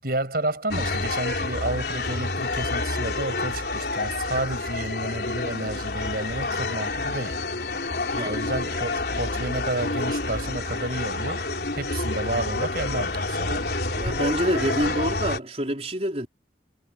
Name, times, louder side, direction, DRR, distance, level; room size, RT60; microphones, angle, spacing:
voice 1, 0.0-7.4 8.2-11.4 11.7-13.7, right 1 dB, 55° right, 6.6 m, -31 dB
sound 1, 0.7-15.4, left 2 dB, 60° left, 3.7 m, -28 dB
voice 2, 13.9-16.3, right 1 dB, 35° right, 4.2 m, -27 dB
head